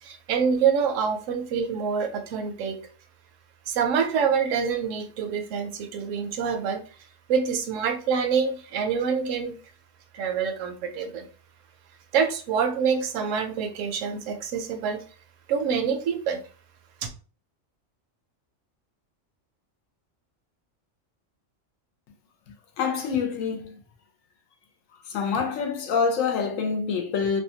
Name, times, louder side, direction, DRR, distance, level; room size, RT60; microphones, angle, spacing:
voice 1, 0.0-2.8 3.7-6.8 7.3-9.5 10.1-11.3 12.1-15.0 15.5-16.4, right 6 dB, 75° right, 0.9 m, -26 dB
voice 2, 22.8-23.7 25.1-27.4, left 5 dB, 85° left, 1.0 m, -26 dB
2.7 x 2.2 x 2.7 m
omnidirectional pair, 1.3 m